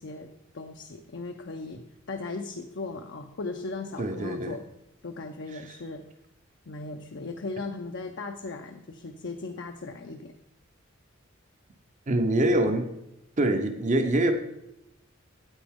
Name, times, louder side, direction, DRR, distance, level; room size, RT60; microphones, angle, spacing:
voice 1, 0.0-1.8 2.1-4.6 5.0-6.0 6.7-10.3, left 3 dB, 65° left, 4 dB, 0.6 m, -37 dB
voice 2, 4.0-4.6 5.5-5.6 12.1-12.9 13.4-14.3, right 1 dB, 40° right, 6 dB, 0.7 m, -24 dB
9.0 x 8.8 x 3.6 m, 0.86 s
head